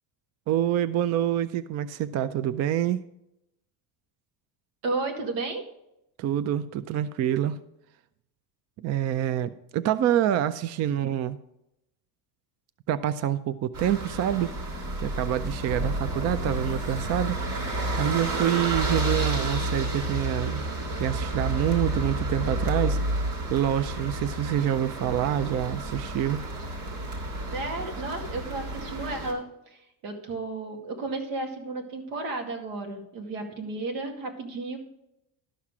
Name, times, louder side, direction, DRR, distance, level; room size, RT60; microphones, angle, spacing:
voice 1, 0.5-3.0 6.2-7.6 8.8-11.4 12.9-14.5 15.0-20.6 21.0-23.0 23.5-26.4, right 11 dB, 40° right, 14 dB, 0.4 m, -27 dB
voice 2, 4.8-5.6 27.5-29.4 29.7-34.8, right 3 dB, 85° right, 2 dB, 2.4 m, -33 dB
sound 1, 13.7-29.3, right 1 dB, 65° right, 3.0 m, -30 dB
12.5 x 5.8 x 4.8 m, 0.83 s
cardioid pair, 130°, 43 cm